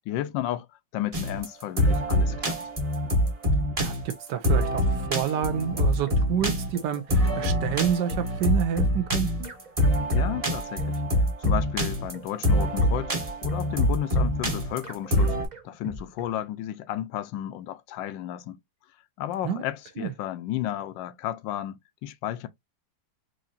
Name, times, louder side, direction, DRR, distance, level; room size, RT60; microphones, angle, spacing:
voice 1, 0.1-0.7 0.9-2.6 10.1-13.1 13.4-15.4 15.6-18.6 19.2-22.5, left 12 dB, 75° left, 1.2 m, -33 dB
sound 1, 1.1-15.4, equal, 25° right, 0.9 m, -24 dB
voice 2, 3.8-9.5 19.4-19.6 20.0-20.1, right 9 dB, 70° right, 1.1 m, -29 dB
sound 2, 5.7-16.4, right 2 dB, 90° right, 0.4 m, -42 dB
4.9 x 2.7 x 2.6 m
omnidirectional pair, 2.2 m